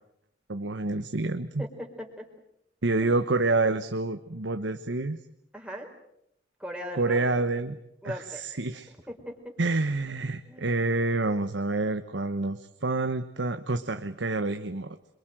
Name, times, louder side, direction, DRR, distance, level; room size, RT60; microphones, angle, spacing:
voice 1, 0.5-1.6 2.8-5.2 6.9-7.8 8.0-8.9 9.6-15.0, right 2 dB, 90° right, 8 dB, 1.2 m, -28 dB
voice 2, 1.6-2.3 3.0-3.1 5.5-5.9 6.6-7.2 8.0-8.4 9.1-9.4 10.5-10.8, equal, 5° right, 1 dB, 4.2 m, -38 dB
27.0 x 23.5 x 7.8 m, 0.77 s
head